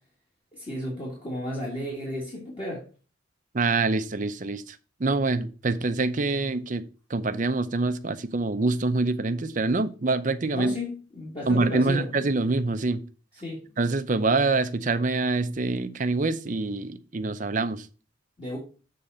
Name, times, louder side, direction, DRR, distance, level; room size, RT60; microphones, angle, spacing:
voice 1, 0.5-2.9 10.5-12.1 13.4-13.7 18.4-18.6, left 1 dB, 25° left, 1.8 m, -33 dB
voice 2, 3.5-6.8 7.1-10.7 11.5-13.0 13.8-17.9, right 3 dB, 40° right, 0.6 m, -25 dB
7.2 x 3.9 x 6.4 m
head